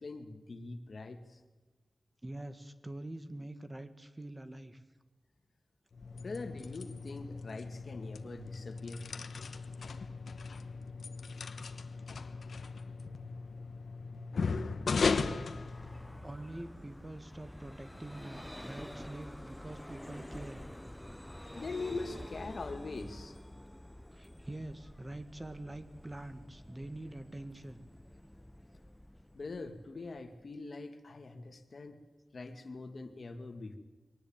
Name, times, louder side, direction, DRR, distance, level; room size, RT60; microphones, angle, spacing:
voice 1, 0.0-1.4 6.2-9.1 21.5-23.4 29.3-32.0 32.3-33.8, left 3 dB, 65° left, 7 dB, 2.2 m, -43 dB
voice 2, 2.2-4.8 16.2-20.7 21.1-21.3 24.1-27.8, right 1 dB, 25° right, 9 dB, 2.0 m, -45 dB
sound 1, 5.9-16.4, left 4 dB, 85° left, 1.2 m, -37 dB
Vehicle, 15.0-30.5, left 1 dB, 10° left, 0.8 m, -49 dB
23.0 x 18.5 x 8.9 m, 1.2 s
cardioid pair, 60°, 0 cm